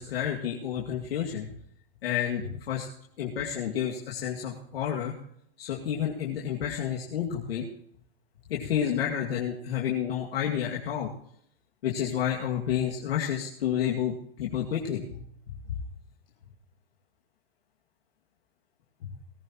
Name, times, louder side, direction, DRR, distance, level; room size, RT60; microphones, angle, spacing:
voice 1, 0.0-1.5 2.0-2.9 3.2-5.1 5.6-7.6 8.5-11.1 11.8-15.0 19.0-19.1, left 9 dB, 75° left, -2 dB, 2.3 m, -30 dB
19.0 x 14.5 x 3.0 m, 0.68 s
hypercardioid pair, 145°, 30 cm